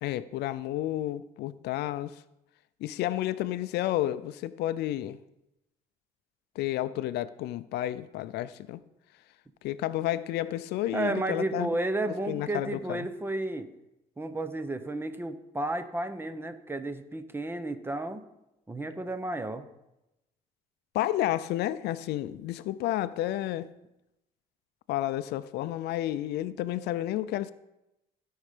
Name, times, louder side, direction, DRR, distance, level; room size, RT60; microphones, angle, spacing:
voice 1, 0.0-2.2 2.8-5.2 6.6-8.8 9.6-11.7 12.3-13.1 20.9-23.7 24.9-27.5, left 14 dB, 80° left, 0.5 m, -31 dB
voice 2, 10.9-13.7 14.2-18.2 18.7-19.7, right 2 dB, 15° right, 0.8 m, -32 dB
15.5 x 5.5 x 5.0 m
cardioid pair, 110°, 17 cm